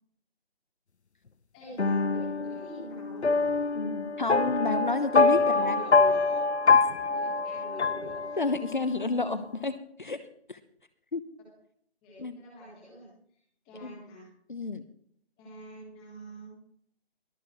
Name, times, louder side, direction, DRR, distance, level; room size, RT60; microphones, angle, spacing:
voice 1, 1.5-3.3 5.4-6.4 7.0-8.4 12.0-13.4 13.6-14.3 15.4-16.6, left 1 dB, 5° left, -6 dB, 1.4 m, -45 dB
sound 1, 1.8-8.8, left 4 dB, 85° left, 1.0 m, -25 dB
voice 2, 3.7-5.8 8.4-10.6 11.1-11.2 12.2-12.4 13.8-14.0 14.5-14.8, left 3 dB, 50° left, 12 dB, 0.9 m, -31 dB
22.5 x 9.2 x 3.1 m, 0.66 s
figure-of-eight pair, 175°, 33 cm